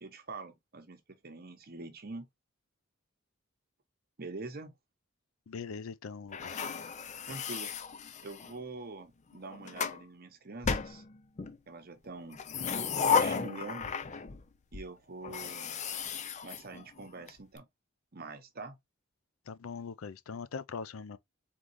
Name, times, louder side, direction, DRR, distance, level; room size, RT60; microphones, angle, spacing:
voice 1, 0.0-2.3 4.2-4.7 7.2-7.7 8.2-11.0 11.7-12.4 13.2-13.9 14.7-15.8 16.4-17.7 18.1-18.8, right 3 dB, 50° right, 0.9 m, -45 dB
voice 2, 5.5-6.6 19.5-21.2, left 5 dB, 85° left, 0.5 m, -41 dB
sound 1, 6.3-8.6 9.3-10.0 10.6-11.6 12.3-14.4 14.7-14.8 15.2-17.3, left 6 dB, 35° left, 0.5 m, -34 dB
3.8 x 3.7 x 3.1 m
head